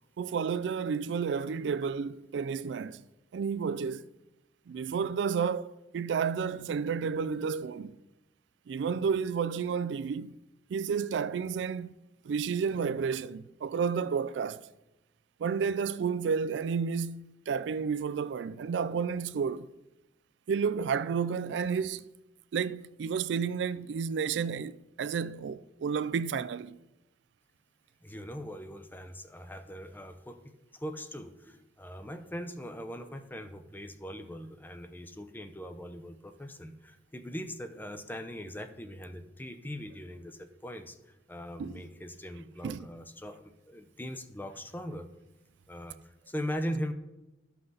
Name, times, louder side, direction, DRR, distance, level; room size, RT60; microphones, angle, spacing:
voice 1, 0.2-3.0 3.3-4.0 4.7-7.9 8.7-10.4 10.7-11.9 12.2-14.7 15.4-19.7 20.5-22.1 22.5-26.8 41.6-41.8 42.6-42.9, right 6 dB, 80° right, 0.3 m, -31 dB
voice 2, 28.0-30.4 30.7-41.0 41.3-45.1 45.7-46.0 46.3-46.9, equal, 10° left, 0.6 m, -40 dB
12.5 x 5.8 x 3.9 m
head